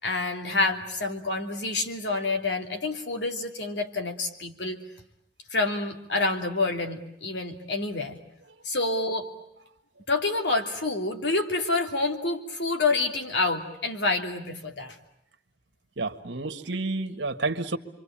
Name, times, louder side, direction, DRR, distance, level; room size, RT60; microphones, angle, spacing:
voice 1, 0.0-4.8 5.5-8.2 8.6-9.3 10.1-15.0, left 3 dB, 70° left, 4 dB, 3.0 m, -28 dB
voice 2, 16.0-17.8, right 3 dB, 80° right, 6 dB, 1.7 m, -30 dB
28.0 x 24.5 x 8.8 m, 0.77 s
head